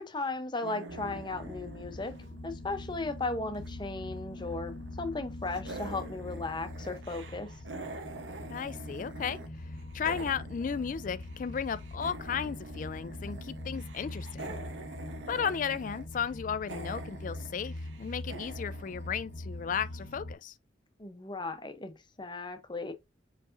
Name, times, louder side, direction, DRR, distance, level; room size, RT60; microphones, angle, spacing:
voice 1, 0.0-2.1 2.4-7.5 21.0-22.9, left 3 dB, 25° left, 0.7 m, -36 dB
sound 1, 0.6-3.7 4.0-5.2 5.5-9.5 9.7-19.8, right 2 dB, 85° right, 1.0 m, -46 dB
sound 2, 0.9-20.3, left 1 dB, 65° left, 0.8 m, -43 dB
voice 2, 8.5-9.4 9.9-14.5 15.3-20.5, left 7 dB, 45° left, 0.3 m, -34 dB
4.7 x 4.0 x 2.6 m
head